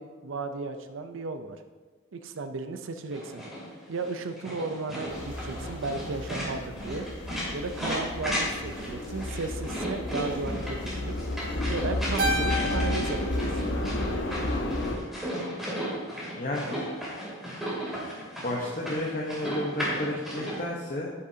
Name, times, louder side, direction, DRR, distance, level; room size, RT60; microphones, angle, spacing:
voice 1, 0.0-1.6 2.1-3.4 3.9-7.1 7.5-11.1 11.7-13.6, right 3 dB, 75° right, 8 dB, 0.6 m, -35 dB
sound 1, 3.1-20.6, equal, ahead, 2.9 m, -35 dB
sound 2, 5.1-15.0, left 1 dB, 65° left, 1.0 m, -32 dB
Keyboard (musical), 12.2-14.7, equal, 50° right, 1.2 m, -32 dB
voice 2, 16.4-16.8 18.4-21.1, left 1 dB, 40° left, -3 dB, 1.0 m, -32 dB
10.5 x 8.5 x 2.8 m, 1.4 s
head